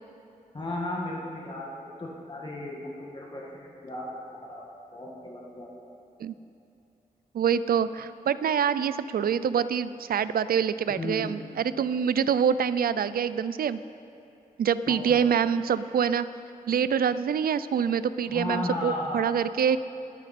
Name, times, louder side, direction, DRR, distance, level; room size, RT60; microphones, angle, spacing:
voice 1, 0.5-4.6 4.9-5.7 10.9-11.4 14.9-15.2 18.3-19.3, left 1 dB, 35° left, -3 dB, 1.8 m, -35 dB
voice 2, 7.3-13.8 14.6-16.3 16.7-19.8, right 7 dB, 85° right, 14 dB, 0.5 m, -25 dB
20.0 x 10.5 x 4.3 m, 2.8 s
wide cardioid pair, 130°, 15 cm